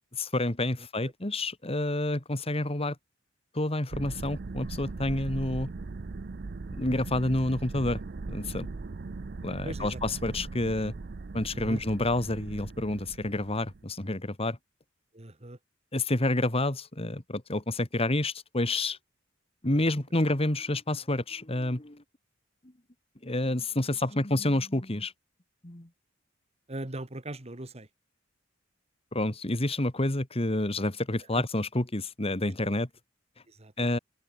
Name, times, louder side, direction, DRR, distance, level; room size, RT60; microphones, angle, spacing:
voice 1, 0.1-3.0 3.5-5.7 6.8-8.0 8.3-8.7 9.4-10.9 11.3-14.6 15.9-19.0 19.6-22.0 23.2-25.1 25.6-25.9 29.1-32.9 33.8-34.0, left 1 dB, 30° left, 2.1 m, -29 dB
sound 1, 3.9-13.8, right 3 dB, 50° right, 0.6 m, -39 dB
voice 2, 9.6-10.0 11.5-11.8 15.1-15.6 26.7-27.9 31.3-31.4 33.5-33.9, right 1 dB, 30° right, 1.7 m, -39 dB
open air
head